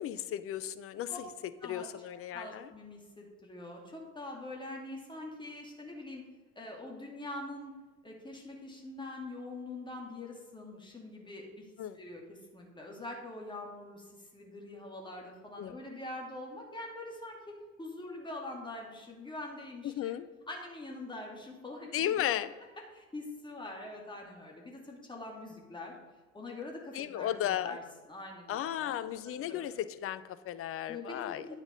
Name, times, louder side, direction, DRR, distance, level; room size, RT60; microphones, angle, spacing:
voice 1, 0.0-2.7 11.8-12.0 15.6-15.7 19.8-20.3 21.9-22.5 26.9-27.8 28.5-31.5, left 11 dB, 35° left, 13 dB, 0.6 m, -35 dB
voice 2, 2.3-6.2 6.6-7.7 8.0-11.6 11.9-20.1 20.5-22.3 22.9-26.0 26.3-27.8 28.1-29.6 30.9-31.6, left 2 dB, 10° left, 0 dB, 2.5 m, -44 dB
9.9 x 5.9 x 5.3 m, 1.3 s
figure-of-eight pair, 65°, 40 cm